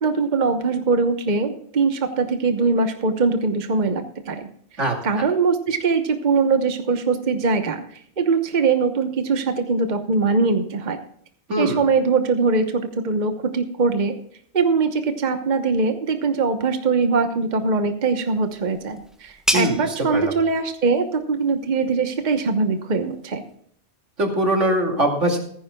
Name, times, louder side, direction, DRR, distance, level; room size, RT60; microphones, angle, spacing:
voice 1, 0.0-4.5 5.0-11.0 11.6-14.1 14.5-23.4, right 4 dB, 40° right, 7 dB, 1.1 m, -22 dB
voice 2, 11.5-11.8 19.5-19.8 20.1-20.3 24.2-25.4, right 1 dB, 85° right, 2 dB, 2.9 m, -21 dB
sound 1, 18.1-23.5, equal, ahead, 1.3 m, -33 dB
16.0 x 14.5 x 2.3 m, 0.63 s
omnidirectional pair, 1.2 m